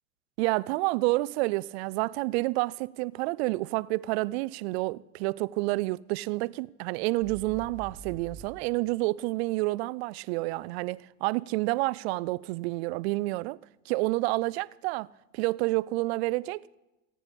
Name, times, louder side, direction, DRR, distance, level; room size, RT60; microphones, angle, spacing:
voice 1, 0.4-13.6 13.9-15.1 15.3-16.7, right 21 dB, 65° right, 0.5 m, -29 dB
sound 1, 7.2-8.5, right 4 dB, 45° left, 4.8 m, -45 dB
26.5 x 10.0 x 5.3 m
hypercardioid pair, 105°, 35 cm